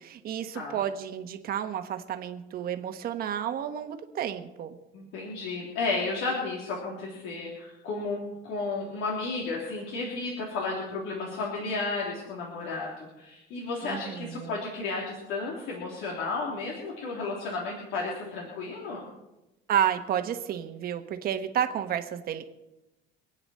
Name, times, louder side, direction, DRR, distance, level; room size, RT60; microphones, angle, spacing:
voice 1, 0.0-4.8 13.8-14.6 19.7-22.5, right 9 dB, 50° right, 8 dB, 1.2 m, -31 dB
voice 2, 4.9-8.2 8.4-19.1, left 3 dB, 90° left, -3 dB, 3.1 m, -33 dB
26.5 x 9.1 x 4.3 m, 0.98 s
cardioid pair, 160°, 20 cm